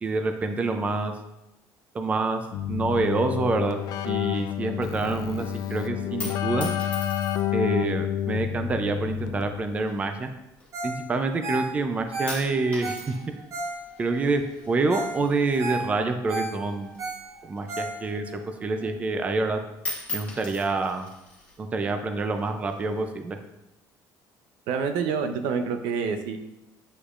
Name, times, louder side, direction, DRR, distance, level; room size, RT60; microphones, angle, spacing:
voice 1, 0.0-1.1 1.9-2.4 2.7-3.8 4.1-6.7 7.5-10.3 10.8-13.1 14.0-17.0 17.4-18.3 18.6-19.6 20.1-21.1 21.6-23.4, right 3 dB, 20° right, 7 dB, 0.4 m, -27 dB
Keyboard (musical), 2.5-9.8, left 11 dB, 55° left, 0.3 m, -29 dB
sound 1, 6.2-7.7 8.5-9.0 9.8-11.2 11.5-11.9 12.3-16.3 16.6-18.3 18.7-18.8 19.1-19.5 19.8-21.6 22.4-23.0, left 2 dB, 20° left, 1.5 m, -40 dB
Ringtone, 10.7-11.0 11.3-14.2 14.6-14.7 14.9-15.2 15.4-18.3 18.8-18.9, right 2 dB, 45° right, 1.2 m, -33 dB
voice 2, 24.7-26.4, right 6 dB, 85° right, 8 dB, 0.6 m, -27 dB
8.3 x 5.0 x 2.4 m, 0.94 s
cardioid pair, 170°, 8 cm